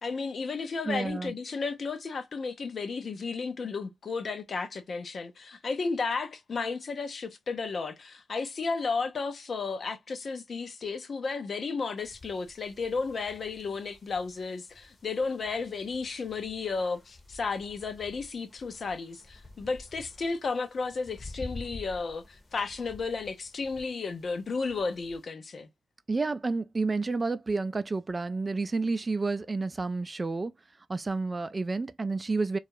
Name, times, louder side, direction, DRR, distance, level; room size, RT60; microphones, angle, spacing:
voice 1, 0.0-25.7, left 4 dB, 60° left, 0.5 m, -33 dB
voice 2, 0.9-1.3 26.1-30.5 30.9-32.6, right 3 dB, 35° right, 0.3 m, -30 dB
sound 1, 12.0-25.2, left 2 dB, 35° left, 0.8 m, -50 dB
2.3 x 2.0 x 3.0 m
supercardioid pair, 45°, 0 cm